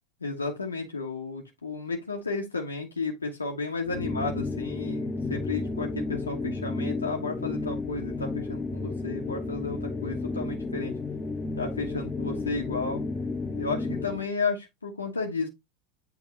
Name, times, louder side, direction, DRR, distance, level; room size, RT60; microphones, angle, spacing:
voice 1, 0.2-10.9 11.6-13.0 13.5-15.5, left 3 dB, 80° left, 1.3 m, -33 dB
sound 1, 3.9-14.3, left 3 dB, 20° left, 1.0 m, -32 dB
8.6 x 3.6 x 3.2 m
figure-of-eight pair, 80°, 0 cm